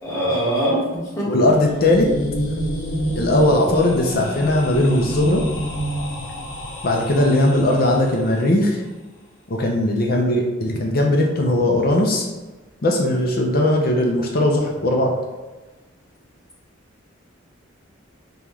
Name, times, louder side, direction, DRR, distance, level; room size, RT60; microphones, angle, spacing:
voice 1, 0.0-1.3, right 1 dB, 15° left, -9 dB, 1.4 m, -22 dB
voice 2, 1.3-2.1 3.1-5.4 6.8-8.8 9.5-12.3 12.8-15.1, left 1 dB, 50° left, 0 dB, 0.5 m, -19 dB
sound 1, 1.5-8.3, equal, 85° left, 0.8 m, -28 dB
5.3 x 2.3 x 3.1 m, 1.2 s
head